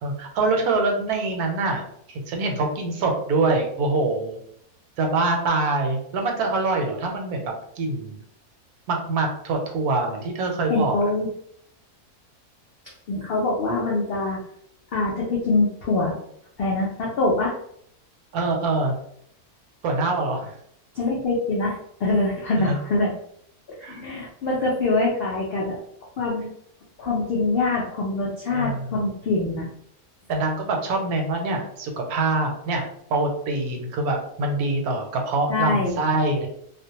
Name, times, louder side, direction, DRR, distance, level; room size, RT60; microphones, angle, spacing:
voice 1, 0.0-1.8 2.1-4.4 5.0-7.4 7.8-8.2 8.9-11.0 18.3-18.9 19.8-20.6 22.6-22.8 23.8-24.0 28.5-28.9 30.3-36.5, right 3 dB, 80° right, 3 dB, 1.1 m, -24 dB
voice 2, 10.7-11.3 13.1-14.4 14.9-16.2 16.6-17.6 20.9-23.1 23.8-25.8 26.2-26.5 27.0-29.7 35.5-36.0, left 2 dB, 80° left, -3 dB, 0.5 m, -24 dB
2.4 x 2.1 x 2.7 m, 0.69 s
omnidirectional pair, 1.6 m